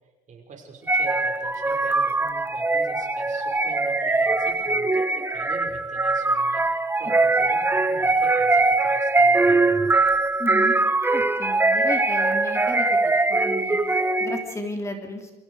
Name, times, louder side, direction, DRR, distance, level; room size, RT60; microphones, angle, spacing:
voice 1, 0.3-9.9, right 5 dB, 45° right, 2 dB, 5.7 m, -44 dB
sound 1, 0.9-14.5, right 3 dB, 15° right, 1.2 m, -22 dB
voice 2, 10.4-10.8 11.1-15.3, left 1 dB, 15° left, 3 dB, 3.5 m, -34 dB
28.5 x 24.0 x 5.0 m, 1.0 s
cardioid pair, 110°, 17 cm